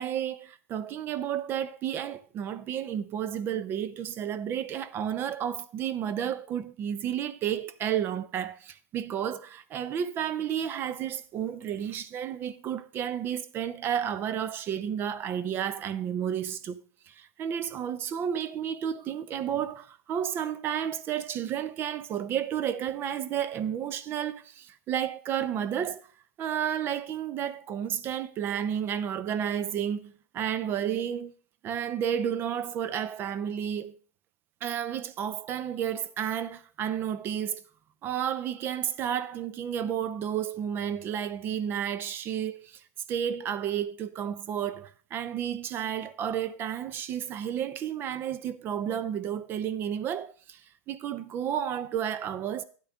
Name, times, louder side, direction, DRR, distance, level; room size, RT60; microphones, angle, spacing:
voice 1, 0.0-16.8 17.1-26.0 26.4-31.3 31.6-33.9 34.6-37.6 38.0-42.8 43.1-50.6 50.9-52.6, right 9 dB, 25° right, 0.6 m, -31 dB
12.5 x 9.1 x 3.6 m
supercardioid pair, 155°, 9 cm